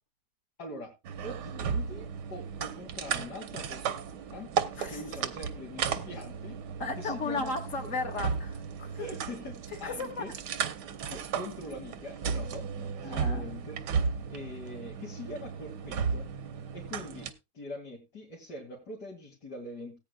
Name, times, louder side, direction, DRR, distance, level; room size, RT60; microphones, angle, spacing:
voice 1, 0.6-0.9 1.2-4.5 4.9-6.6 6.9-7.9 9.0-10.3 11.0-13.8 14.3-16.3 16.7-20.0, left 1 dB, 85° left, -3 dB, 3.1 m, -43 dB
sound 1, 1.0-17.3, right 6 dB, 85° right, 1.5 m, -35 dB
voice 2, 6.8-9.1 9.8-10.2 13.0-13.5, left 3 dB, 50° left, 3 dB, 2.4 m, -35 dB
18.5 x 8.9 x 2.3 m, 0.24 s
omnidirectional pair, 1.7 m